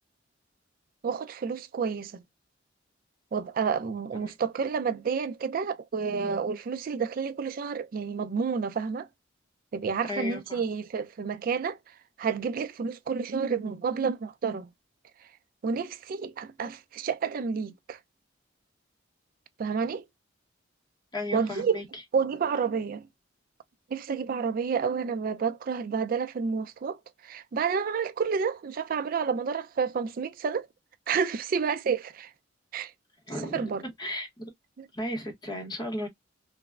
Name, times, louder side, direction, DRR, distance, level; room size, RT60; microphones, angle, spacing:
voice 1, 1.0-2.1 3.3-9.1 9.7-11.8 12.2-14.7 15.6-18.0 19.6-20.0 21.3-21.8 22.1-23.1 23.9-27.0 27.2-30.7 31.1-32.3 32.7-32.9 33.5-33.8 34.8-34.9, right 6 dB, 50° right, 0.3 m, -30 dB
voice 2, 10.1-10.6 21.1-22.0 33.3-33.7 34.0-34.5 34.9-36.1, left 1 dB, 20° left, 0.7 m, -35 dB
3.2 x 2.0 x 2.2 m
head